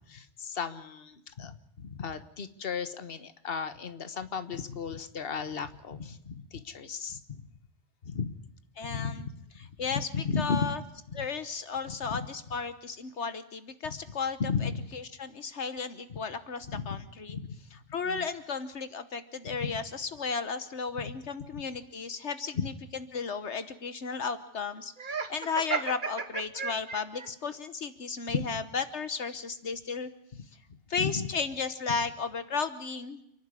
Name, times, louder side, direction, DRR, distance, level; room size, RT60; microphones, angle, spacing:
voice 1, 0.1-7.5 8.0-8.3 8.9-9.2 9.6-9.7 10.1-10.7 11.1-11.3 11.9-12.3 13.8-14.0 14.4-14.8 16.7-17.0 17.3-17.6 18.0-18.3 19.4-19.8 21.0-21.1 21.5-21.6 22.5-22.7 28.3-28.5 30.7-31.2 31.9-32.0, left 5 dB, 55° left, 11 dB, 1.5 m, -35 dB
voice 2, 8.8-9.3 9.8-10.1 10.4-10.8 11.1-17.4 17.9-22.7 23.1-24.9 25.3-30.1 30.9-33.2, left 5 dB, 75° left, 11 dB, 1.5 m, -34 dB
Laughter, 25.0-27.3, right 5 dB, 45° right, 1.5 m, -34 dB
29.0 x 11.5 x 9.8 m, 0.76 s
omnidirectional pair, 1.2 m